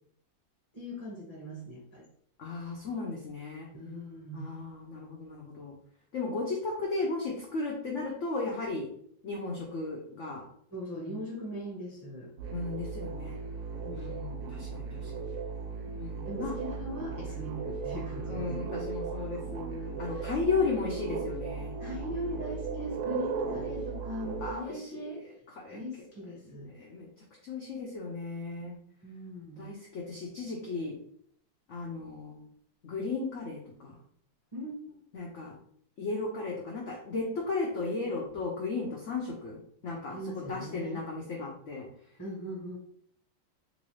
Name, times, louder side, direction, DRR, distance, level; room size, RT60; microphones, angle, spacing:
voice 1, 0.7-2.0 3.7-4.6 10.7-12.3 13.8-14.2 15.8-15.9 16.3-18.5 20.1-20.3 21.8-25.2 25.7-26.7 29.0-29.7 34.5-35.0 40.1-41.0 42.2-42.8, equal, 15° left, -4 dB, 0.9 m, -40 dB
voice 2, 2.4-3.7 4.3-5.7 6.1-8.9 9.2-10.4 12.5-13.4 13.9-15.1 16.0-16.5 18.3-21.7 24.4-25.8 26.6-27.1 27.4-28.8 29.6-31.0 31.7-32.4 32.8-33.9 35.1-35.5 36.0-41.9, left 3 dB, 85° left, -2 dB, 0.6 m, -35 dB
sound 1, 12.4-24.5, right 5 dB, 70° right, 1.1 m, -37 dB
3.8 x 2.6 x 3.1 m, 0.65 s
omnidirectional pair, 2.1 m